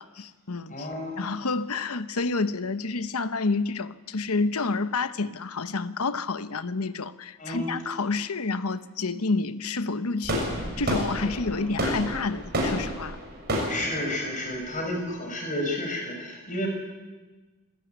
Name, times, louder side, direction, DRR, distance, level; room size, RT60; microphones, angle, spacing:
voice 1, 0.0-0.9 1.2-13.2, left 3 dB, 85° left, 12 dB, 1.0 m, -29 dB
voice 2, 0.7-1.3 7.4-7.7 11.5-11.8 13.5-16.7, left 1 dB, 35° left, 2 dB, 6.1 m, -31 dB
sound 1, 10.2-15.2, equal, 45° right, 6.7 m, -30 dB
26.5 x 14.0 x 9.4 m, 1.2 s
head